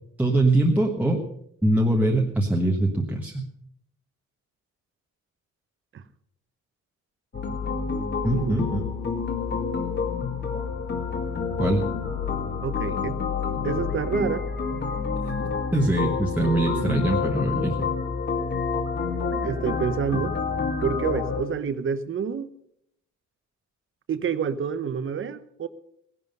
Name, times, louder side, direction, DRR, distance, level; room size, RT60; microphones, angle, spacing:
voice 1, 0.2-1.2 1.6-3.4 8.2-8.8 11.6-11.8 15.2-15.3 15.7-17.7, right 1 dB, 5° right, 1.3 m, -23 dB
sound 1, 7.3-21.4, left 5 dB, 35° left, 2.0 m, -28 dB
voice 2, 8.3-8.6 12.6-13.1 13.6-14.4 16.7-17.1 19.4-20.3 20.8-22.5 24.1-25.7, right 7 dB, 40° right, 0.9 m, -28 dB
17.5 x 11.0 x 5.4 m
cardioid pair, 165°, 31 cm